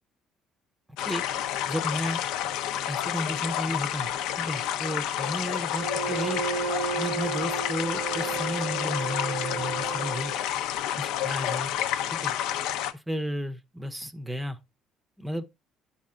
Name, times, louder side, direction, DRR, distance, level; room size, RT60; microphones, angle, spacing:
sound 1, 1.0-12.9, left 11 dB, 85° left, 0.5 m, -30 dB
voice 1, 1.7-2.2 2.9-6.4 7.0-10.3 11.0-11.7 12.1-12.3 12.9-14.6 15.2-15.4, equal, 10° right, 0.6 m, -33 dB
Bowed string instrument, 5.7-10.5, right 6 dB, 85° right, 1.3 m, -33 dB
10.0 x 4.3 x 3.5 m
cardioid pair, 100°, 0 cm